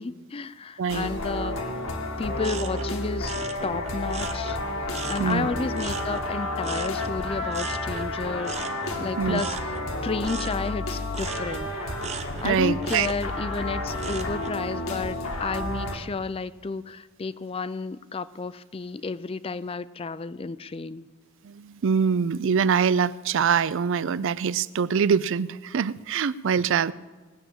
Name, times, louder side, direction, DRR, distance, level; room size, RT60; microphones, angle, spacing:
voice 1, 0.0-1.6 2.2-3.3 3.6-9.8 10.0-11.7 12.4-21.1, left 4 dB, 25° left, 16 dB, 0.4 m, -32 dB
voice 2, 0.8-1.1 5.2-5.5 9.2-9.4 12.4-13.1 21.4-26.9, right 6 dB, 60° right, 18 dB, 0.4 m, -24 dB
sound 1, 0.9-16.0, left 2 dB, 80° left, 1.8 m, -31 dB
sound 2, 2.4-5.4 5.7-14.6 15.0-15.5, right 5 dB, 30° right, 0.8 m, -39 dB
19.0 x 7.0 x 8.6 m, 1.4 s
head